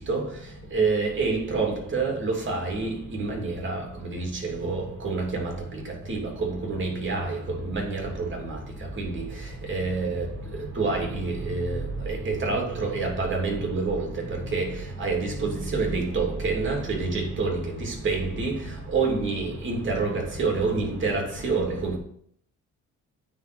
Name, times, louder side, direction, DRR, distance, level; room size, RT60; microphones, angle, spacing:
voice 1, 0.7-3.8 4.1-5.8 6.1-7.4 7.6-8.6 9.0-9.3 9.7-10.3 10.7-14.7 15.0-18.6 18.9-22.0, right 3 dB, 40° right, 2.8 m, -27 dB
9.2 x 3.9 x 6.8 m
cardioid pair, 90°, 30 cm